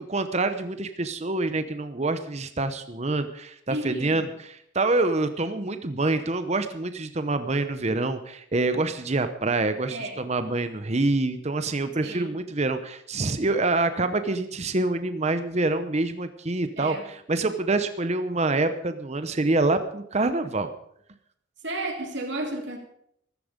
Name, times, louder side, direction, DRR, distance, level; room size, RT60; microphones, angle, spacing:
voice 1, 0.0-20.7, right 2 dB, 35° right, 10 dB, 0.8 m, -26 dB
voice 2, 3.7-4.3 9.9-10.2 12.0-12.4 16.8-17.0 21.6-22.8, right 2 dB, 60° right, 2 dB, 3.2 m, -32 dB
14.5 x 14.0 x 5.1 m, 0.70 s
head